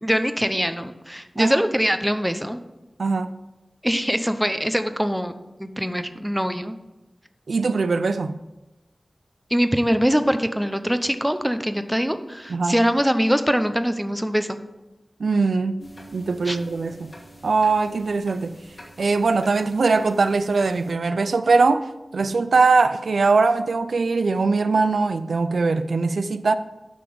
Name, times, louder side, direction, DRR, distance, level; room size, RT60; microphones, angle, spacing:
voice 1, 0.0-2.6 3.8-5.3 5.6-6.7 9.5-14.6 16.5-16.6, equal, 5° right, 0.7 m, -23 dB
voice 2, 3.0-3.4 7.5-8.4 12.5-12.8 15.2-15.8 16.1-17.1 17.4-18.6 19.0-26.6, right 4 dB, 90° right, 0.4 m, -21 dB
sound 1, 15.8-20.9, equal, 55° left, 2.3 m, -46 dB
9.4 x 5.9 x 5.1 m
wide cardioid pair, 55°, 0 cm